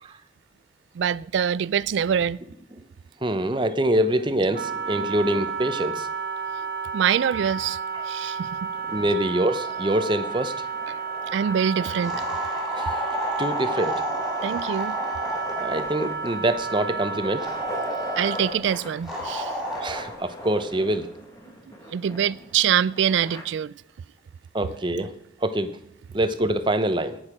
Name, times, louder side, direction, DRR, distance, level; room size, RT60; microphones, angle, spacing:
voice 1, 1.0-2.4 6.9-7.8 8.1-8.7 10.9-11.0 11.3-12.2 14.4-15.0 18.2-19.5 21.9-23.7, right 8 dB, 70° right, 0.3 m, -24 dB
voice 2, 3.2-6.1 7.9-8.1 8.9-10.6 12.8-12.9 13.4-14.2 15.6-17.5 19.7-21.1 24.5-25.1 25.4-25.7 26.1-27.2, right 1 dB, 25° right, 0.7 m, -25 dB
Wind instrument woodwind instrument, 4.5-18.6, right 5 dB, 50° right, 1.2 m, -32 dB
sound 1, 8.7-23.4, left 1 dB, 15° left, 1.6 m, -42 dB
sound 2, 12.0-16.0 17.4-18.6 19.1-20.0, equal, 5° right, 2.7 m, -31 dB
17.5 x 6.4 x 4.9 m
head